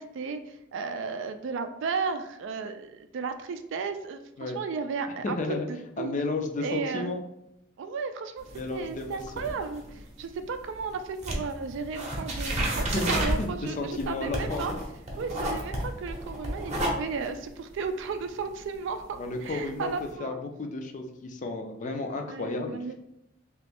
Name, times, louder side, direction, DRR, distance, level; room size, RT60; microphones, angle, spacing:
voice 1, 0.0-6.1 6.6-7.2 7.8-14.7 15.2-20.4 21.9-22.9, right 5 dB, 65° right, 8 dB, 0.3 m, -34 dB
voice 2, 5.2-5.7 6.0-7.2 8.5-9.4 12.9-14.7 19.2-19.9 20.2-22.8, left 3 dB, 40° left, 4 dB, 0.4 m, -32 dB
sound 1, 8.4-10.9 11.2-20.1, right 1 dB, 35° right, 0.7 m, -32 dB
3.0 x 2.5 x 3.4 m, 0.83 s
head